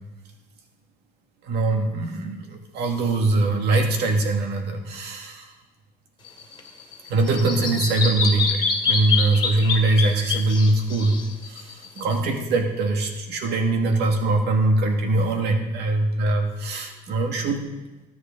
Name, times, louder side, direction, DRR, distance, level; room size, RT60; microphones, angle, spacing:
voice 1, 1.4-5.5 7.1-17.6, right 2 dB, 80° right, 3 dB, 1.8 m, -22 dB
Bird vocalization bird call bird song, 6.2-12.1, left 5 dB, 30° left, 2.2 m, -26 dB
18.0 x 8.3 x 3.7 m, 1.1 s
cardioid pair, 110°, 17 cm